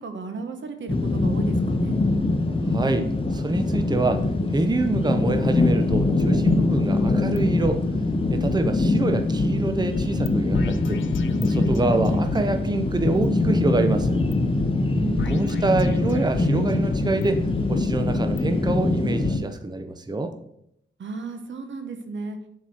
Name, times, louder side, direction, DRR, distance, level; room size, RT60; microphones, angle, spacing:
voice 1, 0.0-2.0 14.9-15.6 21.0-22.4, right 4 dB, 80° right, 7 dB, 1.1 m, -33 dB
sound 1, 0.9-19.4, left 2 dB, 30° left, 1.0 m, -23 dB
voice 2, 2.7-4.3 4.5-7.8 8.3-11.0 11.4-14.2 15.1-20.3, right 2 dB, 20° right, 8 dB, 0.7 m, -26 dB
sound 2, 5.9-7.4 7.6-7.8 8.2-9.5 10.0-10.3 10.5-12.4 12.9-14.3 14.6-14.7 15.2-16.5 16.9-18.8 19.2-19.3, left 7 dB, 85° left, 0.5 m, -35 dB
6.9 x 4.7 x 6.1 m, 0.73 s
wide cardioid pair, 85°, 19 cm